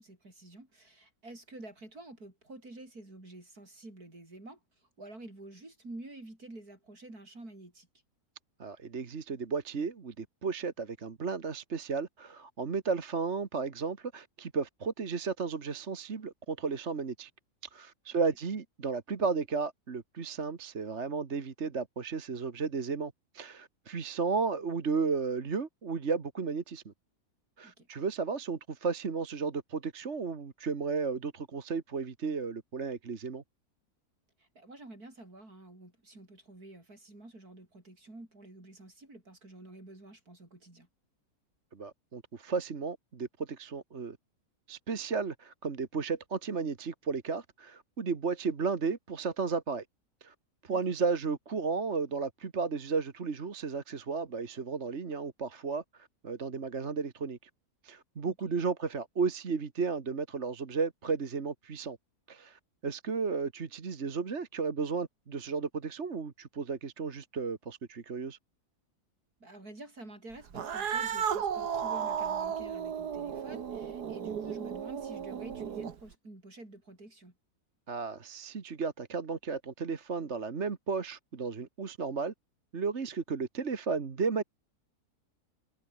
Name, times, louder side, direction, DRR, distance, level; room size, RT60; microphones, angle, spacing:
voice 1, 0.0-7.9 27.6-27.9 34.4-40.9 50.7-50.8 58.3-58.5 69.4-77.3, right 2 dB, 70° right, 7.8 m, -49 dB
voice 2, 8.6-17.3 17.7-26.9 27.6-33.4 41.7-44.2 44.7-49.8 50.2-50.3 50.7-57.5 57.8-62.0 62.3-68.4 77.9-82.3 82.7-84.4, right 5 dB, 45° right, 1.8 m, -34 dB
Cat, 70.5-76.1, right 7 dB, 90° right, 2.0 m, -34 dB
omnidirectional pair, 1.7 m